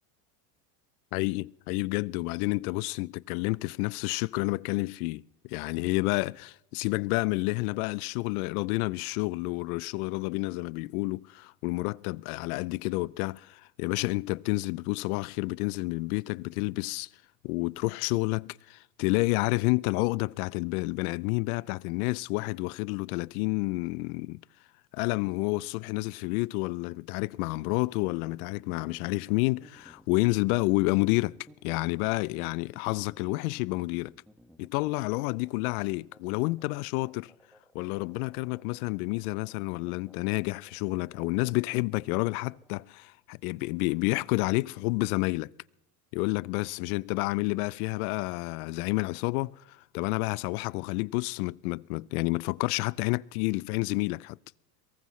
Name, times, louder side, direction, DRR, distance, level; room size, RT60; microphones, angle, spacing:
voice 1, 1.1-17.1 17.4-24.4 24.9-31.3 31.6-34.1 34.6-37.3 37.7-45.5 46.1-54.4, left 24 dB, 65° left, 0.5 m, -29 dB
sound 1, 27.9-42.7, equal, ahead, 1.5 m, -58 dB
22.5 x 18.0 x 3.1 m
supercardioid pair, 105°, 47 cm